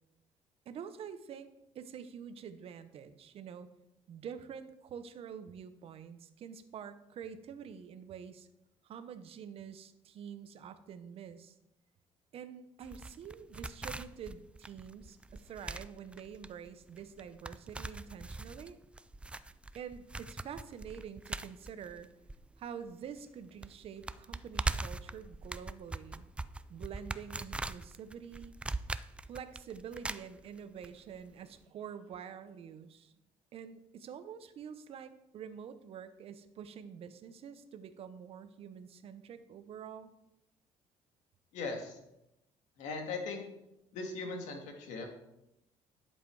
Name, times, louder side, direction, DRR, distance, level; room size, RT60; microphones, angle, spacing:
voice 1, 0.7-1.5 1.7-3.7 4.1-8.5 8.8-11.5 12.3-18.8 19.7-22.1 22.6-26.3 26.7-28.5 29.2-33.1 33.5-40.1, right 7 dB, 55° right, 11 dB, 0.9 m, -47 dB
sound 1, 12.8-22.9 23.2-23.3 23.6-30.9 31.1-31.2, right 2 dB, 10° right, 0.4 m, -41 dB
voice 2, 41.5-42.0 42.8-43.4 43.9-45.1, left 3 dB, 75° left, 3 dB, 2.2 m, -39 dB
11.0 x 7.5 x 4.8 m, 0.87 s
cardioid pair, 125°, 12 cm